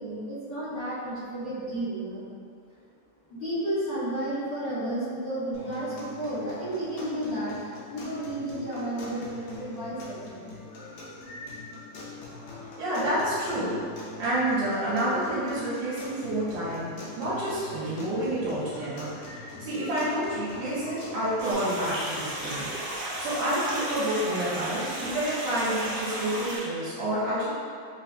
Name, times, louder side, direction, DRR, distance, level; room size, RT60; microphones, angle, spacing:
voice 1, 0.0-2.3 2.7-2.8 3.3-10.5, right 1 dB, 65° left, -15 dB, 1.6 m, -32 dB
sound 1, 5.5-21.5, left 2 dB, 85° left, 1.5 m, -43 dB
voice 2, 12.8-13.8 14.2-22.7 23.2-27.5, right 1 dB, 80° right, -11 dB, 2.4 m, -29 dB
sound 2, 21.4-26.6, right 1 dB, 60° right, 1.9 m, -34 dB
5.6 x 2.6 x 2.2 m, 2.3 s
omnidirectional pair, 4.1 m